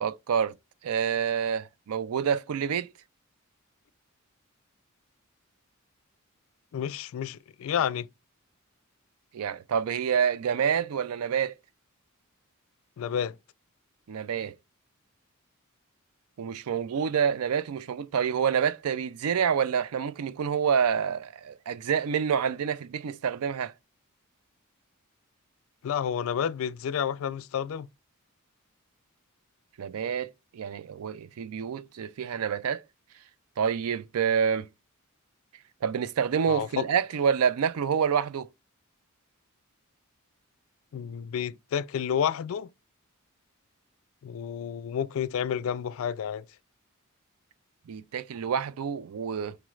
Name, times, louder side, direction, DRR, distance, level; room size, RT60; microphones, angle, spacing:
voice 1, 0.0-0.5 0.8-2.9 9.3-11.5 14.1-14.5 16.4-23.7 29.8-32.8 33.6-34.7 35.8-38.5 47.9-49.6, right 7 dB, 80° right, 0.4 m, -27 dB
voice 2, 6.7-8.1 13.0-13.4 25.8-27.9 36.5-36.8 40.9-42.7 44.2-46.4, left 8 dB, 65° left, 0.3 m, -30 dB
4.8 x 3.1 x 2.3 m
head